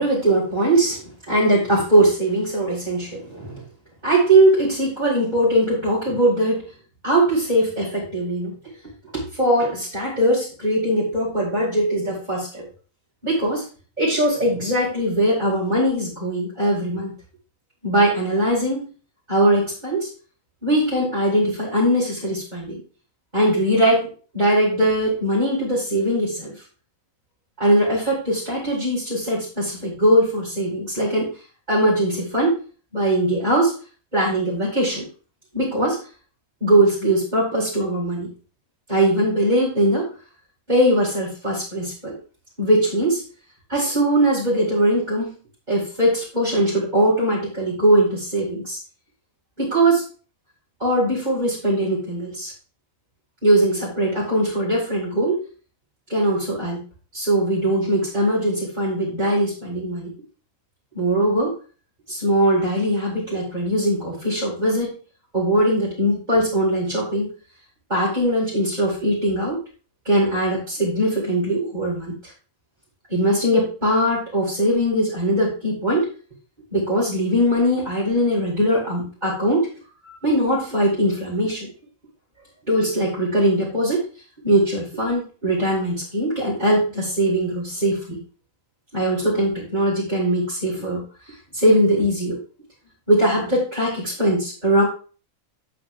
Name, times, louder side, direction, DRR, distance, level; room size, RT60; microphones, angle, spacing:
voice 1, 0.0-3.5 4.0-6.6 7.0-8.5 9.1-12.7 13.2-13.6 14.0-17.1 17.8-18.8 19.3-20.1 20.6-22.8 23.3-24.1 24.3-26.5 27.6-31.3 31.7-32.6 32.9-33.7 34.1-35.1 35.5-36.0 36.6-38.3 38.9-40.1 40.7-42.1 42.6-43.2 43.7-45.4 45.7-48.8 49.6-50.1 50.8-52.5 53.4-55.5 56.1-56.8 57.1-60.1 60.9-61.5 62.1-64.9 65.3-67.3 67.9-69.6 70.1-72.2 73.1-76.1 76.7-79.7 80.0-81.7 82.7-84.1 84.4-88.2 88.9-91.0 91.5-92.4 93.1-94.8, right 1 dB, 30° right, -8 dB, 5.2 m, -20 dB
11.0 x 9.1 x 2.5 m, 0.37 s
omnidirectional pair, 1.4 m